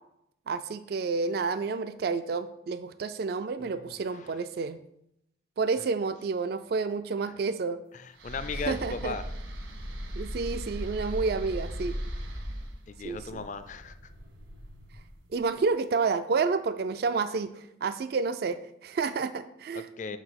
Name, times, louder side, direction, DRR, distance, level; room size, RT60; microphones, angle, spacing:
voice 1, 0.5-4.8 5.6-7.8 8.7-9.1 10.1-12.0 13.0-13.4 15.3-19.9, right 4 dB, 50° right, 11 dB, 0.3 m, -30 dB
voice 2, 3.6-4.4 5.8-5.9 7.3-7.4 7.9-9.3 12.9-14.1 19.7-20.2, left 3 dB, 40° left, 12 dB, 0.4 m, -38 dB
sound 1, 8.2-15.3, equal, 75° right, 1.3 m, -38 dB
5.9 x 4.9 x 5.7 m, 0.81 s
head